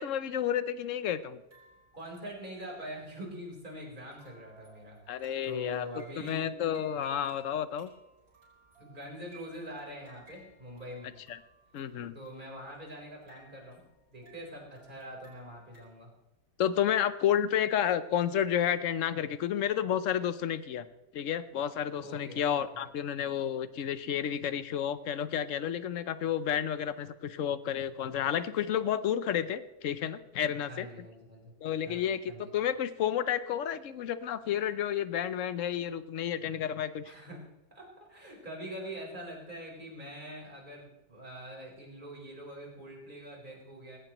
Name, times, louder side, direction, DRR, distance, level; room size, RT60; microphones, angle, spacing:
voice 1, 0.0-1.4 5.1-5.9 6.3-7.9 11.3-11.4 11.7-12.1 16.6-20.8 21.1-30.9 31.6-37.1, left 9 dB, 60° left, 14 dB, 0.8 m, -31 dB
sound 1, 1.5-15.8, right 3 dB, 65° right, 5.6 m, -60 dB
voice 2, 1.9-6.5 8.8-11.1 12.1-13.8 14.1-16.1 22.0-22.9 30.7-31.6 31.9-32.5 37.0-37.5 37.7-44.0, equal, 25° right, -2 dB, 4.2 m, -44 dB
19.0 x 16.5 x 3.0 m, 0.97 s
omnidirectional pair, 1.9 m